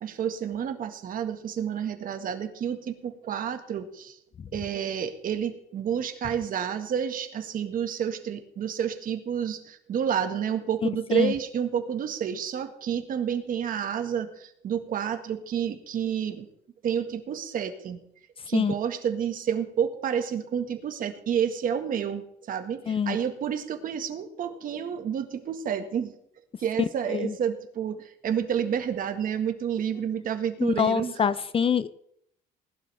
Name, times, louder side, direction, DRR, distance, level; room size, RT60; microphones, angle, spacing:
voice 1, 0.0-4.2 4.5-16.5 16.8-18.0 18.5-26.2 26.6-31.2, right 8 dB, 55° right, 7 dB, 1.8 m, -29 dB
voice 2, 26.8-27.3 30.6-31.9, left 7 dB, 35° left, 15 dB, 0.6 m, -25 dB
19.0 x 12.0 x 3.6 m, 0.72 s
cardioid pair, 110°, 17 cm